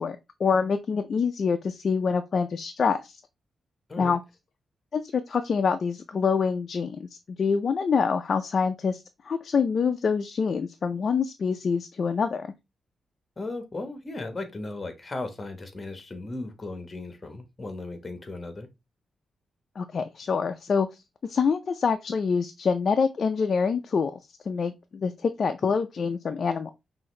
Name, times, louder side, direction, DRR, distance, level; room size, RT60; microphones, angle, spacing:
voice 1, 0.0-3.2 4.0-4.2 4.9-7.1 7.4-12.5 19.8-20.9 21.2-24.2 24.5-26.7, left 5 dB, 50° left, 0.4 m, -26 dB
voice 2, 13.4-18.7, left 2 dB, 25° left, 1.1 m, -36 dB
5.6 x 2.6 x 3.1 m
cardioid pair, 110°, 0 cm